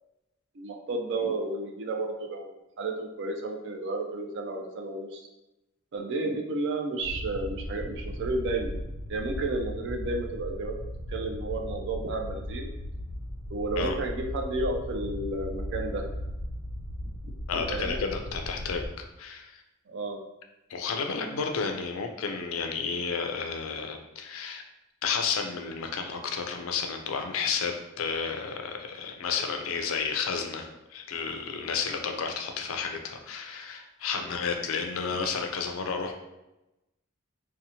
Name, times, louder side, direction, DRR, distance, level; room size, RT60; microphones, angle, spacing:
voice 1, 0.5-2.5 2.8-5.3 5.9-8.8 9.1-10.8 11.1-12.7 13.5-16.0 17.5-18.0 19.9-20.2 34.1-34.3, right 2 dB, 55° right, 2 dB, 0.4 m, -32 dB
sound 1, 7.0-18.9, equal, 10° right, 0.9 m, -37 dB
voice 2, 17.5-19.6 20.7-24.6 25.0-36.1, left 5 dB, 80° left, 4 dB, 0.4 m, -32 dB
2.8 x 2.1 x 2.7 m, 0.95 s
head